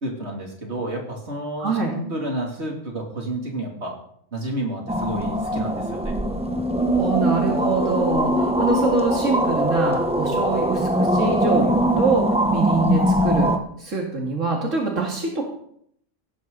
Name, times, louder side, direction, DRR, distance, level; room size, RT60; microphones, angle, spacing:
voice 1, 0.0-4.0 4.3-6.2, right 1 dB, 60° right, 0 dB, 3.4 m, -30 dB
voice 2, 1.6-2.0 7.0-13.5 13.8-15.5, right 4 dB, 80° right, 0 dB, 2.6 m, -24 dB
sound 1, 4.9-13.6, equal, 5° right, 0.9 m, -21 dB
17.0 x 14.0 x 4.1 m, 0.67 s
omnidirectional pair, 1.3 m